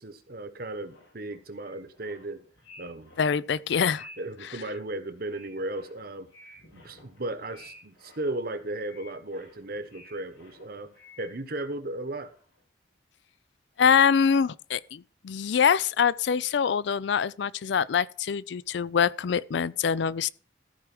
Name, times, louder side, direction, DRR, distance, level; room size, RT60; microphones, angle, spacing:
voice 1, 0.0-2.4 2.8-3.2 4.2-6.3 6.7-10.9 11.2-12.3, right 2 dB, 50° right, 1.1 m, -35 dB
sound 1, 0.8-11.8 12.1-12.6, left 1 dB, 90° left, 5.4 m, -53 dB
voice 2, 3.2-4.1 13.8-20.3, left 7 dB, 65° left, 0.4 m, -24 dB
14.5 x 4.8 x 6.1 m
head